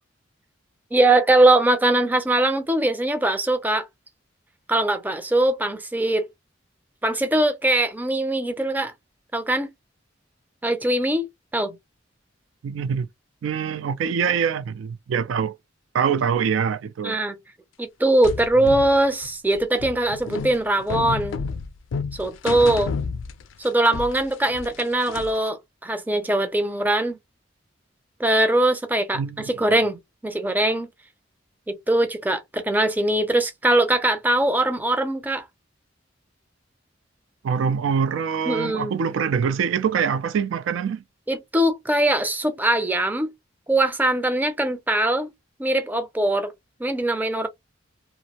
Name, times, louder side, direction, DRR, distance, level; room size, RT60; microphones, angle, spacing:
voice 1, 0.9-3.9 4.7-6.3 7.0-8.9 9.3-9.7 10.6-11.3 11.5-11.8 17.0-17.4 17.8-21.4 22.2-22.9 23.6-27.2 28.2-30.9 31.7-35.4 38.5-38.9 41.3-43.3 43.7-45.3 45.6-46.5 46.8-47.5, right 1 dB, 10° right, 0.4 m, -21 dB
voice 2, 12.6-13.1 13.4-15.5 15.9-17.2 18.6-18.7 29.1-29.5 37.4-41.0, right 7 dB, 85° right, 0.3 m, -24 dB
sound 1, 18.2-23.7 23.9-25.5, left 5 dB, 80° left, 0.4 m, -31 dB
2.5 x 2.0 x 2.8 m
head